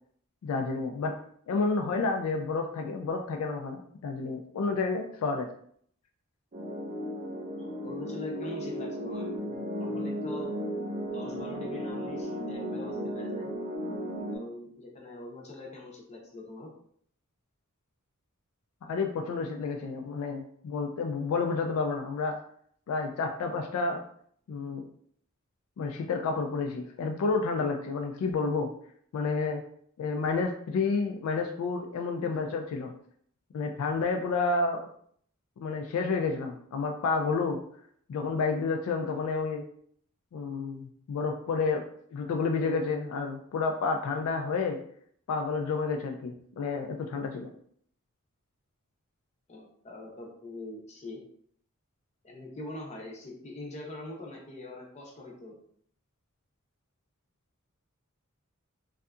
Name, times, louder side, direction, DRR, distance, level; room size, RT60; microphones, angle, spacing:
voice 1, 0.4-1.2 1.5-5.5 18.8-22.4 22.9-24.0 24.5-24.8 25.8-28.7 29.1-29.6 30.0-32.9 33.5-34.8 35.6-37.6 38.1-39.6 40.3-41.8 42.1-44.8 45.3-47.5, left 4 dB, 75° left, 4 dB, 0.3 m, -30 dB
sound 1, 6.5-14.4, equal, 35° right, 0.5 m, -35 dB
voice 2, 7.6-10.5 11.1-13.5 14.3-16.7 49.5-51.2 52.2-55.6, left 2 dB, 30° left, -1 dB, 0.6 m, -43 dB
2.6 x 2.4 x 2.2 m, 0.63 s
head